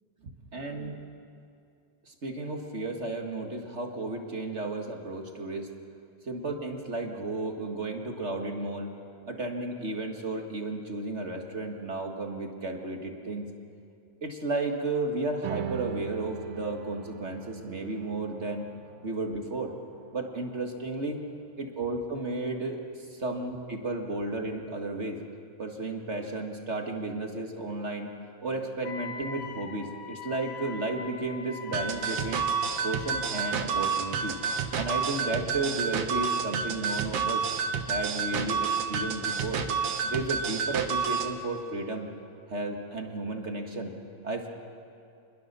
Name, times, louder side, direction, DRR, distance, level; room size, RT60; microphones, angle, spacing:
voice 1, 0.5-0.9 2.1-5.7 6.2-8.9 9.3-13.5 14.2-18.7 19.0-19.7 20.1-21.2 21.6-25.2 25.6-28.1 28.4-32.4 32.8-34.4 34.7-37.5 37.9-39.6 40.0-42.1 42.5-43.9 44.2-44.5, right 2 dB, 30° right, 2 dB, 1.5 m, -33 dB
sound 1, 15.4-22.2, right 8 dB, 90° right, 2.4 m, -42 dB
Wind instrument woodwind instrument, 28.8-35.3, left 5 dB, 45° left, 2.5 m, -43 dB
sound 2, 31.7-41.3, right 6 dB, 65° right, 2.3 m, -29 dB
27.0 x 20.5 x 6.8 m, 2.4 s
omnidirectional pair, 3.3 m